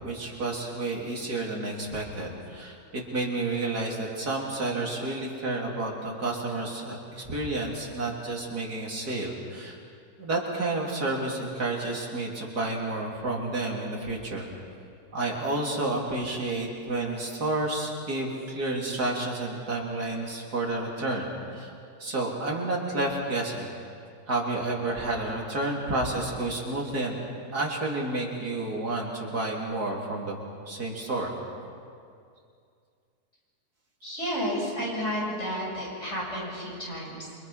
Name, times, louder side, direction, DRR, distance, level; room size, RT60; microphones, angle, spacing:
voice 1, 0.0-9.8 10.2-14.5 15.1-21.7 22.0-23.7 24.3-27.2 27.5-30.3 30.7-31.3, right 2 dB, 80° right, -2 dB, 3.9 m, -30 dB
voice 2, 34.0-37.4, equal, 45° left, -4 dB, 7.5 m, -31 dB
28.5 x 24.5 x 5.8 m, 2.3 s
omnidirectional pair, 1.6 m